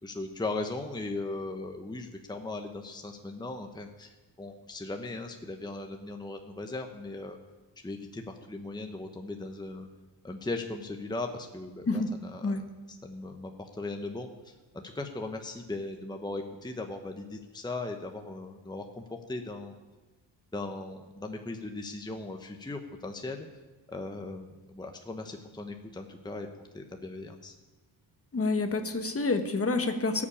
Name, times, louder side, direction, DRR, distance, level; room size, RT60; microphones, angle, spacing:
voice 1, 0.0-7.4 7.8-9.9 10.2-19.7 20.5-23.5 23.9-26.5 26.7-27.5, left 2 dB, 10° left, 4 dB, 1.0 m, -38 dB
voice 2, 28.3-30.2, left 3 dB, 30° left, 7 dB, 1.3 m, -28 dB
13.5 x 7.4 x 8.5 m, 1.2 s
cardioid pair, 80°, 43 cm